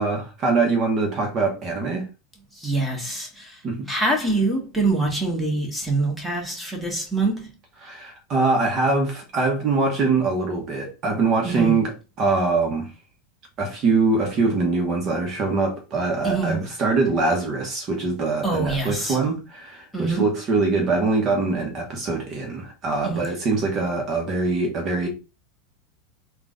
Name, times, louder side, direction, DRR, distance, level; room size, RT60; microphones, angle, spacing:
voice 1, 0.0-2.1 3.6-3.9 7.8-11.9 12.2-12.9 13.6-25.1, right 3 dB, 35° right, 1.1 m, -23 dB
voice 2, 2.5-3.6 3.9-7.5 11.4-11.8 16.2-16.6 18.4-19.2 19.9-20.3 23.0-23.2, right 2 dB, ahead, 1.6 m, -25 dB
3.7 x 2.5 x 3.7 m
supercardioid pair, 125°, 0 cm